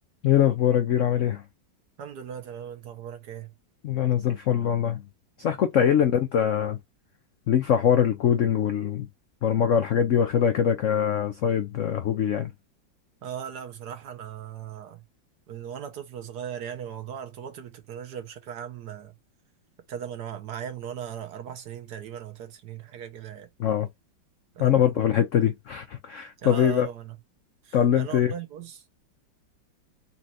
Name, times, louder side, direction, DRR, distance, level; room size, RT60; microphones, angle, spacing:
voice 1, 0.2-1.4 3.8-5.0 5.4-6.8 7.5-9.1 9.4-12.5 23.6-23.9 24.6-26.9 27.7-28.3, left 9 dB, 75° left, 0.7 m, -23 dB
voice 2, 2.0-3.5 13.2-15.0 15.5-19.1 19.9-23.5 24.6-24.9 26.4-27.1 27.6-28.8, right 9 dB, 65° right, 1.3 m, -38 dB
4.2 x 2.5 x 4.2 m
omnidirectional pair, 2.1 m